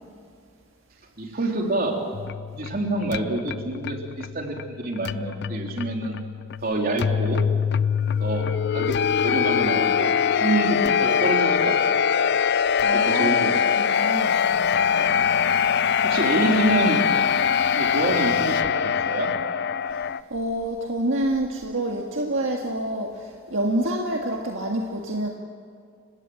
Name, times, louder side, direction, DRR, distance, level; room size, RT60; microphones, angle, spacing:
voice 1, 1.2-2.0 2.5-6.2 6.6-7.4 8.2-8.4 8.7-12.0 13.0-13.6 14.9-15.3 16.0-17.0 17.8-19.3, right 2 dB, 45° right, 1 dB, 3.5 m, -27 dB
sound 1, 2.1-20.2, left 7 dB, 55° left, 0.5 m, -23 dB
voice 2, 12.8-14.4 16.3-16.4 19.9-25.3, right 1 dB, 70° right, 1 dB, 1.8 m, -28 dB
30.0 x 17.0 x 7.9 m, 2.2 s
head